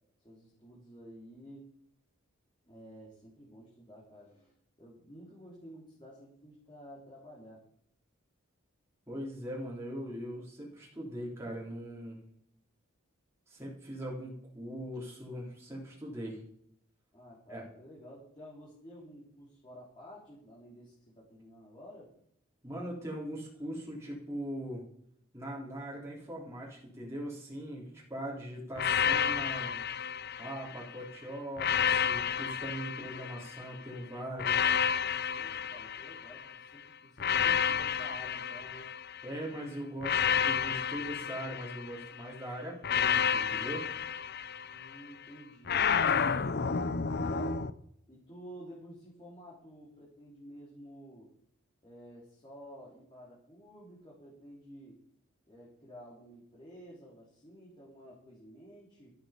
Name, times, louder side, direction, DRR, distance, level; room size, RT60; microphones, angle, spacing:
voice 1, 0.2-1.7 2.6-4.5 4.8-7.6 17.1-22.1 35.3-38.9 44.7-46.2 47.0-47.6 48.1-51.3 51.8-55.0 55.5-59.1, equal, 25° left, -5 dB, 4.0 m, -51 dB
voice 2, 9.1-12.2 13.5-16.4 17.5-17.6 22.6-24.8 25.3-29.8 30.4-34.8 39.2-43.9, equal, 15° right, -5 dB, 3.7 m, -41 dB
sound 1, 28.8-30.9 31.6-33.7 34.4-36.6 37.2-39.3 40.0-42.2 42.8-45.0 45.7-47.7, left 7 dB, 50° left, 0.7 m, -30 dB
13.5 x 13.0 x 5.2 m, 0.70 s
head